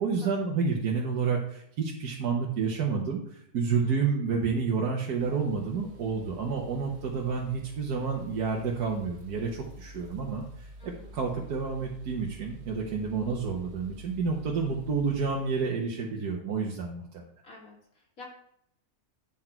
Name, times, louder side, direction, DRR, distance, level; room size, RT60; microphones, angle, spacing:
voice 1, 0.0-17.2, right 5 dB, 85° right, -1 dB, 1.6 m, -30 dB
sound 1, 5.2-15.7, left 1 dB, 50° right, 1.1 m, -49 dB
voice 2, 10.8-11.2 17.4-18.3, left 3 dB, 60° left, -2 dB, 2.8 m, -50 dB
9.1 x 6.0 x 4.4 m, 0.70 s
omnidirectional pair, 1.6 m